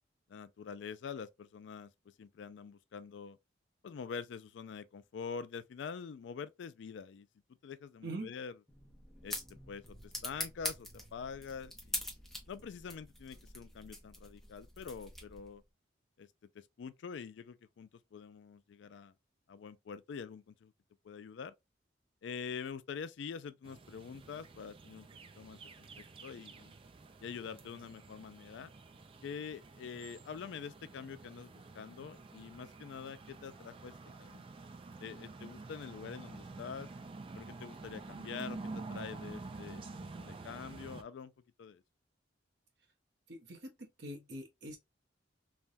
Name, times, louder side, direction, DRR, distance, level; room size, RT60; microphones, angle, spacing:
voice 1, 0.3-1.9 2.2-3.4 3.8-7.3 7.6-8.5 9.2-9.4 9.7-12.1 12.5-15.6 16.2-16.3 16.5-19.1 19.5-20.7 21.0-21.5 22.2-25.1 25.4-26.7 27.2-28.7 29.2-33.9 34.2-34.4 35.0-36.9 37.3-39.9 40.1-41.3 41.6-41.8, left 6 dB, 75° left, 0.3 m, -45 dB
sound 1, 8.7-15.6, left 1 dB, ahead, 0.6 m, -44 dB
sound 2, 23.6-41.0, right 3 dB, 30° right, 0.3 m, -49 dB
voice 2, 43.3-44.8, right 1 dB, 65° right, 0.9 m, -44 dB
3.3 x 2.2 x 2.5 m
head